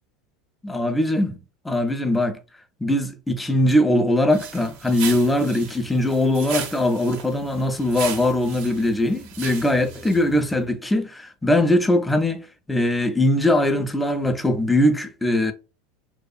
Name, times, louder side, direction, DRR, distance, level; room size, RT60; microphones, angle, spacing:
voice 1, 0.6-1.3 1.6-2.4 2.8-15.5, left 1 dB, 5° left, 0.4 m, -21 dB
sound 1, 4.3-10.5, right 7 dB, 70° right, 0.5 m, -36 dB
2.7 x 2.4 x 2.2 m
hypercardioid pair, 105°, 0 cm